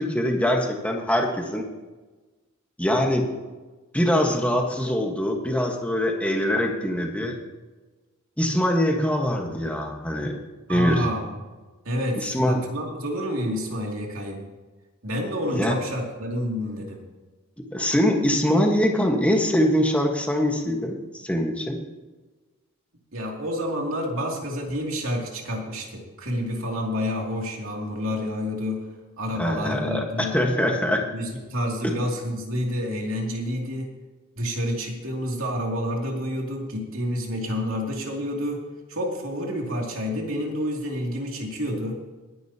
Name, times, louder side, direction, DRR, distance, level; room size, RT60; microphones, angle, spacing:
voice 1, 0.0-1.7 2.8-3.3 3.9-7.4 8.4-10.4 10.7-11.0 12.2-12.6 15.5-15.7 17.7-21.0 21.2-21.8 29.4-31.0, equal, 5° left, 1 dB, 1.4 m, -23 dB
voice 2, 10.7-11.3 11.8-14.4 15.0-17.0 23.1-28.9 29.2-30.4 31.1-33.9 34.3-38.6 38.9-42.0, equal, 70° right, -1 dB, 2.8 m, -29 dB
21.5 x 10.0 x 2.9 m, 1.2 s
head